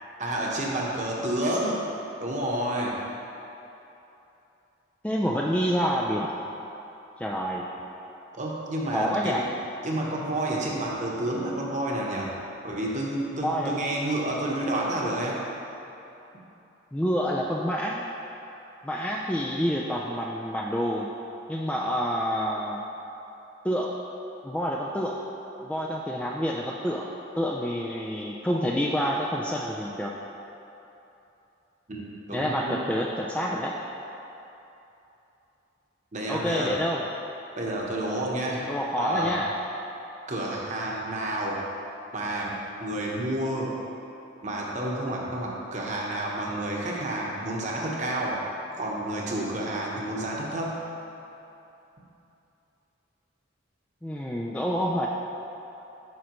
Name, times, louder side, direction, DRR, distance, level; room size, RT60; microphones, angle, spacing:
voice 1, 0.2-1.8 2.2-2.9 8.3-9.4 9.8-12.3 12.6-15.4 31.9-32.9 36.1-36.8 37.6-38.7 39.0-39.4 40.3-41.7 42.1-43.8 44.4-48.4 48.7-50.8, right 1 dB, 40° right, -3 dB, 1.0 m, -30 dB
voice 2, 5.0-6.3 7.2-7.7 8.9-9.5 13.3-13.7 16.9-18.0 18.8-21.1 21.5-22.8 23.6-24.0 24.4-25.2 25.6-27.1 27.4-30.1 32.3-33.8 36.3-37.0 38.7-39.5 54.0-55.1, equal, 5° left, -2 dB, 0.3 m, -28 dB
9.3 x 6.2 x 3.0 m, 2.9 s
head